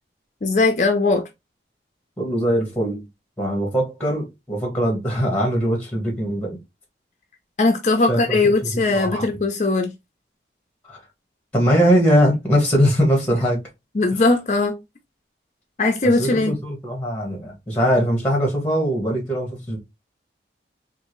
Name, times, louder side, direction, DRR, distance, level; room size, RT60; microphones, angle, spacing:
voice 1, 0.4-1.2 7.6-9.9 13.9-14.8 15.8-16.5, left 3 dB, 40° left, 0.5 m, -19 dB
voice 2, 2.2-3.0 3.4-6.6 8.1-8.4 8.9-9.2 10.9-11.0 11.5-13.6 16.2-19.8, equal, 5° left, 1.2 m, -21 dB
3.6 x 2.5 x 3.0 m
head